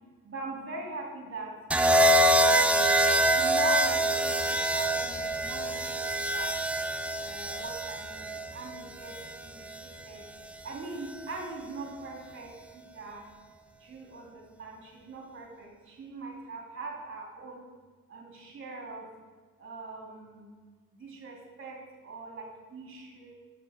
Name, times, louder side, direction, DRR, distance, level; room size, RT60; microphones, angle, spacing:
voice 1, 0.2-1.6 2.1-3.0 3.3-6.6 7.2-9.2 9.4-10.2 10.6-13.2 13.8-17.7 18.1-19.1 19.6-20.5 21.0-23.3, right 3 dB, 40° right, 0 dB, 2.6 m, -42 dB
sound 1, 1.7-9.8 11.1-11.4, right 1 dB, 5° right, 0.4 m, -25 dB
11.5 x 6.2 x 6.3 m, 1.5 s
wide cardioid pair, 175°, 33 cm